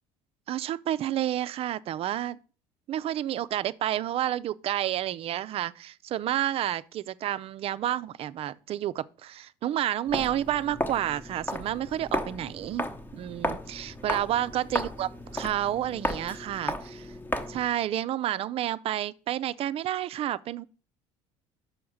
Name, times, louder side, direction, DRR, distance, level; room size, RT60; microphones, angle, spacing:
voice 1, 0.5-2.4 2.9-12.9 13.1-15.1 15.3-17.1 17.5-20.6, right 12 dB, 50° right, 0.4 m, -30 dB
Walk footsteps, 10.1-17.7, left 1 dB, 15° left, 0.9 m, -34 dB
6.4 x 4.7 x 6.3 m
supercardioid pair, 105°, 13 cm